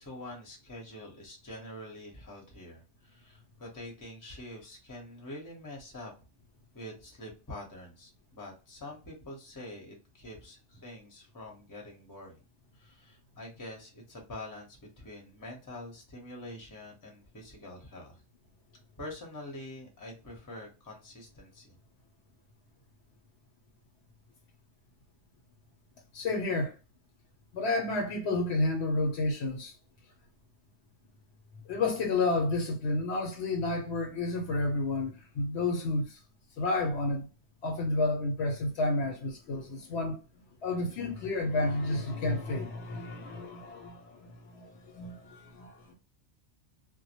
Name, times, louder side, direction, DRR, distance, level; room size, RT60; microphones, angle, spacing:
voice 1, 0.0-6.1 6.7-12.4 12.7-18.2 19.0-21.8, left 1 dB, 20° left, 0.7 m, -45 dB
voice 2, 26.1-26.8 27.5-29.7 31.7-36.2 36.6-37.3 37.6-40.2 40.6-45.9, left 2 dB, 70° left, 0.9 m, -31 dB
2.1 x 2.1 x 2.8 m
omnidirectional pair, 1.2 m